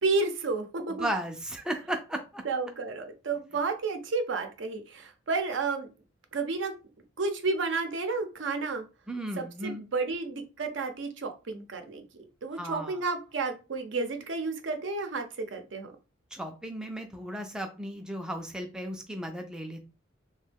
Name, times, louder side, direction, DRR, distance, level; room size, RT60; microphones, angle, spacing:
voice 1, 0.0-1.1 2.4-5.9 6.3-6.7 7.2-8.8 9.4-12.0 12.4-15.9, right 3 dB, 75° right, 6 dB, 0.6 m, -31 dB
voice 2, 1.0-2.4 9.1-9.8 12.5-13.0 16.3-19.8, right 1 dB, 5° right, 4 dB, 0.3 m, -35 dB
2.9 x 2.2 x 3.3 m, 0.31 s
head